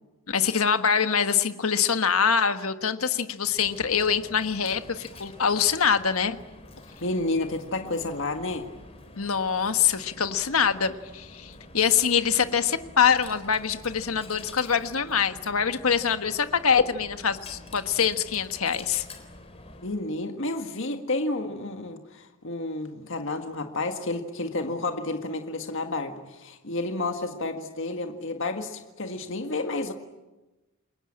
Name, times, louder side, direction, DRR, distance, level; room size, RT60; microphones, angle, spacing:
voice 1, 0.3-6.4 9.2-19.0, left 7 dB, 90° left, 9 dB, 1.4 m, -24 dB
Coin (dropping), 3.4-20.1, left 2 dB, 30° left, 4.1 m, -47 dB
voice 2, 7.0-8.7 19.8-29.9, left 2 dB, 60° left, 5 dB, 1.8 m, -30 dB
29.0 x 22.0 x 8.8 m, 1.1 s
head